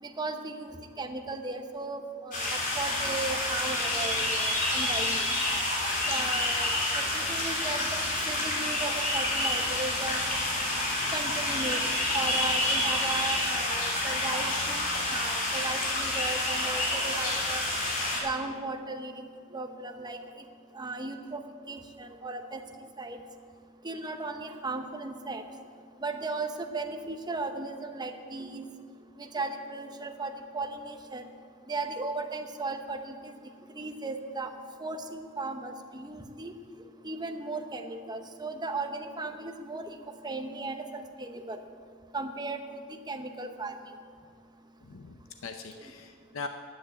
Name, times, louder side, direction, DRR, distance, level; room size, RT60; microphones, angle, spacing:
voice 1, 0.0-5.3 6.1-6.7 6.9-7.9 8.3-10.2 11.1-11.8 12.1-17.6 18.2-20.4 20.7-21.4 21.7-22.6 23.0-23.2 23.8-25.4 26.0-28.6 29.2-31.3 31.7-33.3 33.7-34.5 34.8-36.5 37.0-40.0 40.2-40.8 41.2-41.6 42.1-42.8 43.1-43.7 45.7-45.9, right 3 dB, 20° right, 6 dB, 0.9 m, -36 dB
sound 1, 2.3-18.2, left 1 dB, 40° left, 3.2 m, -28 dB
voice 2, 44.9-46.5, left 4 dB, 75° left, 6 dB, 0.6 m, -41 dB
10.5 x 8.9 x 8.0 m, 2.2 s
head